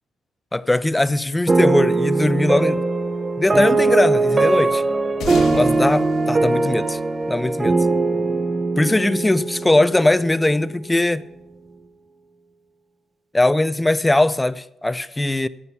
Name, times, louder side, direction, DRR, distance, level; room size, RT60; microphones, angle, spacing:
voice 1, 0.5-2.8 3.4-4.8 5.5-7.0 7.3-7.8 8.8-11.2 13.3-15.5, left 2 dB, 10° left, 0.5 m, -20 dB
sound 1, 1.5-10.6, right 3 dB, 30° right, 0.8 m, -20 dB
sound 2, 5.2-8.0, left 4 dB, 70° left, 2.4 m, -35 dB
12.5 x 8.7 x 5.9 m
cardioid pair, 90°, 0 cm